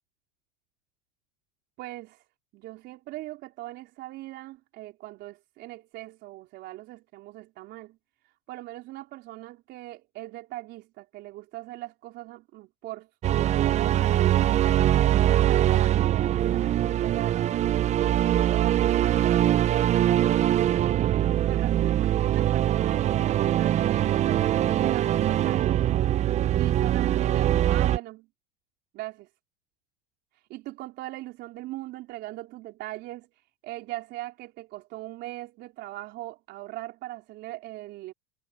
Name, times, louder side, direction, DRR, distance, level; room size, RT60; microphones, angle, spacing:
voice 1, 1.8-2.2 2.5-8.0 8.5-17.6 17.8-20.4 20.8-21.0 21.5-25.8 26.5-28.3 28.9-29.3 30.5-33.3 33.6-38.1, right 17 dB, 55° right, 4.1 m, -40 dB
sound 1, 13.2-28.0, right 12 dB, 35° right, 0.6 m, -23 dB
supercardioid pair, 110°, 21 cm